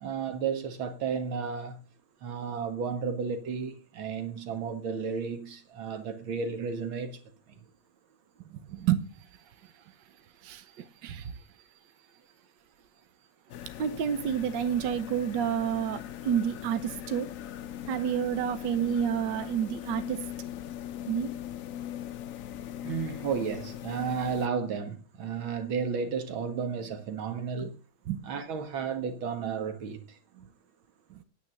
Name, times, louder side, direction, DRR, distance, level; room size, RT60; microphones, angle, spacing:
voice 1, 0.0-1.8 2.2-7.2 7.5-7.6 22.8-27.8 28.2-30.5, right 6 dB, 85° right, 2.3 m, -33 dB
voice 2, 8.5-9.0 9.6-9.8 10.4-11.4 13.8-17.3 17.9-20.2 21.1-21.3 27.6-27.7 28.1-28.2 31.1-31.2, right 9 dB, 70° right, 1.4 m, -30 dB
sound 1, 13.5-24.5, left 11 dB, 70° left, 0.8 m, -40 dB
9.5 x 8.5 x 7.6 m
omnidirectional pair, 2.1 m